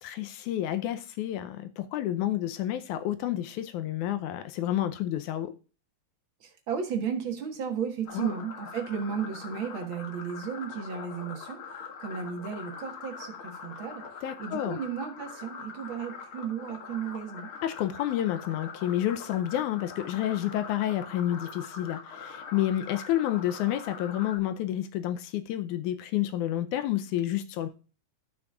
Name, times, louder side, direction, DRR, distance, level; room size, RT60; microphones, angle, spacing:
voice 1, 0.0-5.5 8.2-8.3 14.2-14.8 17.6-27.7, left 12 dB, 85° left, 2.1 m, -30 dB
voice 2, 6.4-11.6 12.0-14.1 14.4-17.5, right 7 dB, 50° right, 1.8 m, -34 dB
sound 1, 8.1-24.4, left 5 dB, 50° left, 2.1 m, -43 dB
14.0 x 6.0 x 2.4 m
omnidirectional pair, 3.5 m